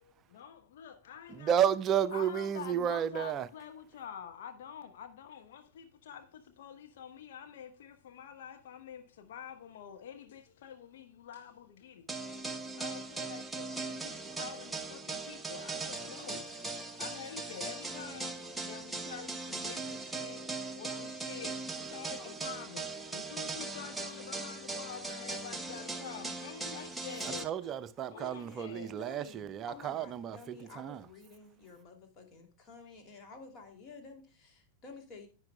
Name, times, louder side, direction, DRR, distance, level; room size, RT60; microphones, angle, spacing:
voice 1, 0.3-1.5 2.1-12.1 12.8-16.5 17.0-27.5 28.1-29.0, left 8 dB, 55° left, 0.9 m, -47 dB
voice 2, 1.3-3.5 27.4-31.1, right 9 dB, 30° right, 0.5 m, -32 dB
sound 1, 12.1-27.4, right 3 dB, 5° right, 1.0 m, -39 dB
voice 3, 22.2-22.7 28.1-35.3, left 4 dB, 35° left, 2.6 m, -52 dB
10.5 x 9.7 x 2.2 m
figure-of-eight pair, 90°, 0 cm